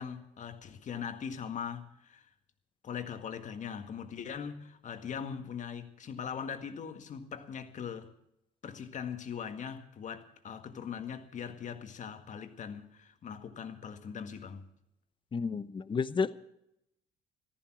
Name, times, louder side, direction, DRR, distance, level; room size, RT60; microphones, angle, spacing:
voice 1, 0.0-2.3 2.8-8.1 8.6-14.6, left 7 dB, 45° left, 1.8 m, -41 dB
voice 2, 15.3-16.4, left 5 dB, 30° left, 0.9 m, -31 dB
15.0 x 14.0 x 6.2 m
cardioid pair, 110°, 17 cm